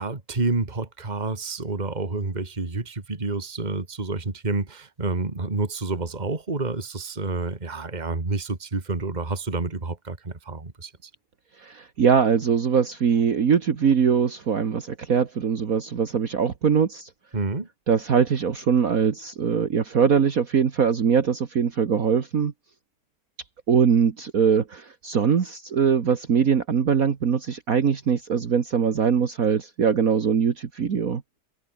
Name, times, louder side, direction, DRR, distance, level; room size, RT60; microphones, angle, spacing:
voice 1, 0.0-11.1 17.3-17.7, right 3 dB, 25° right, 2.5 m, -29 dB
voice 2, 11.6-17.1 17.9-22.5 23.7-31.2, right 6 dB, 55° right, 1.8 m, -22 dB
omnidirectional pair, 1.8 m